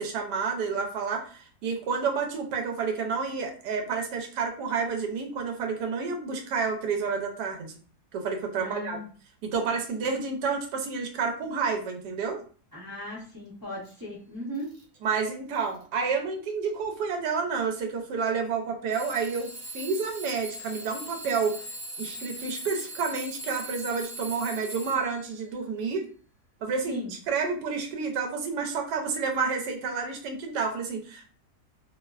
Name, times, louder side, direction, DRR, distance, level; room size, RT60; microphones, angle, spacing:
voice 1, 0.0-7.8 8.1-9.0 9.4-12.4 15.0-19.5 19.7-21.6 22.0-26.1 26.6-31.3, right 5 dB, 80° right, 3 dB, 1.2 m, -30 dB
voice 2, 8.6-9.0 12.7-14.7 26.9-27.1, equal, 20° right, -8 dB, 0.6 m, -37 dB
Alarm / Clock, 13.9-14.0 14.5-15.0 15.5-15.9 16.8-16.9 18.9-25.3, right 1 dB, 60° right, 0.9 m, -40 dB
2.9 x 2.1 x 2.3 m, 0.41 s
omnidirectional pair, 1.8 m